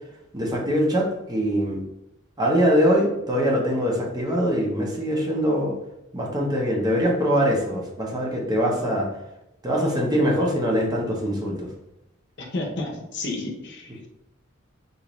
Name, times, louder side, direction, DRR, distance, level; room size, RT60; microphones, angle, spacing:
voice 1, 0.3-1.8 2.4-5.7 6.1-9.1 9.6-11.7, equal, 20° right, -1 dB, 0.6 m, -23 dB
voice 2, 12.4-14.1, left 2 dB, 60° left, 1 dB, 0.7 m, -31 dB
3.9 x 2.5 x 3.0 m, 0.88 s
head